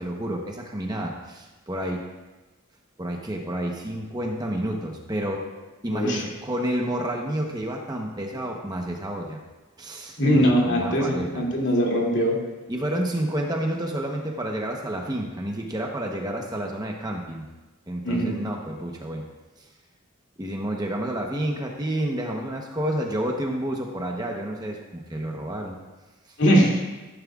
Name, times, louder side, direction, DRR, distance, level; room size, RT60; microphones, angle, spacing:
voice 1, 0.0-2.0 3.0-5.5 5.8-9.4 9.8-10.4 10.7-11.4 12.7-17.5 17.9-19.3 20.4-25.8, right 1 dB, 20° right, 0 dB, 1.0 m, -29 dB
voice 2, 5.9-6.2 10.2-12.4 18.0-18.4 26.4-26.8, equal, 55° left, -3 dB, 2.6 m, -21 dB
15.0 x 10.5 x 2.4 m, 1.2 s
head